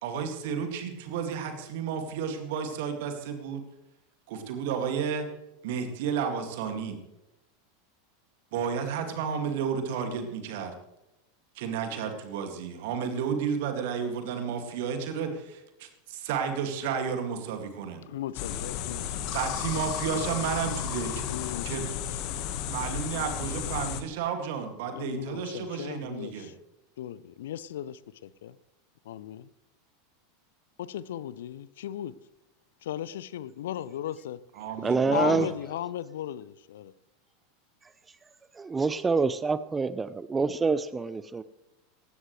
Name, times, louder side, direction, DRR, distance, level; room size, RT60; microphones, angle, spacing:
voice 1, 0.0-3.6 4.3-5.3 5.6-7.0 8.5-10.7 11.6-18.0 19.3-21.2 21.6-21.9 22.7-26.5 34.6-35.5, right 7 dB, 55° right, 2.2 m, -32 dB
voice 2, 18.1-19.2 21.3-22.2 24.9-26.6 27.0-28.6 29.0-29.5 30.8-32.1 32.8-34.4 35.1-36.9, left 11 dB, 60° left, 0.6 m, -36 dB
sound 1, 18.3-24.0, left 9 dB, 45° left, 1.4 m, -33 dB
voice 3, 34.8-35.5 38.6-41.4, right 4 dB, 15° right, 0.6 m, -26 dB
18.0 x 15.5 x 3.2 m
figure-of-eight pair, 85°, 0 cm